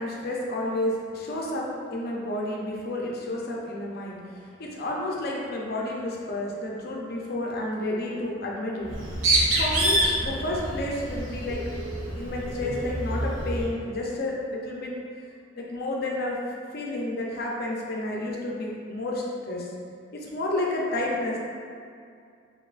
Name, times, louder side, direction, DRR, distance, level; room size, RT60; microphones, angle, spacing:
voice 1, 0.0-4.2 4.6-8.9 9.6-11.6 12.2-14.9 15.6-16.4 16.7-19.7 20.2-21.4, left 1 dB, 55° left, -2 dB, 0.6 m, -30 dB
Bird, 8.8-13.7, right 1 dB, 85° right, 0.7 m, -27 dB
4.3 x 3.0 x 2.5 m, 2.3 s
head